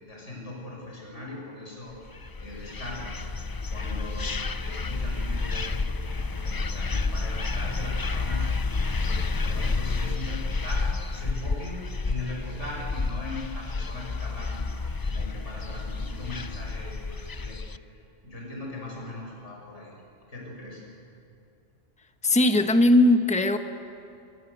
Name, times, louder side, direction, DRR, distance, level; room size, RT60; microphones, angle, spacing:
voice 1, 0.0-3.1 3.7-4.3 4.6-8.5 9.0-11.8 12.0-14.6 15.0-17.6 18.2-19.9 20.3-20.8, left 2 dB, 70° left, -2 dB, 6.7 m, -39 dB
sound 1, 2.1-17.8, left 3 dB, 35° left, 0.3 m, -30 dB
voice 2, 22.2-23.6, left 1 dB, 5° left, 7 dB, 1.1 m, -19 dB
26.0 x 25.5 x 8.2 m, 2.5 s
omnidirectional pair, 1.3 m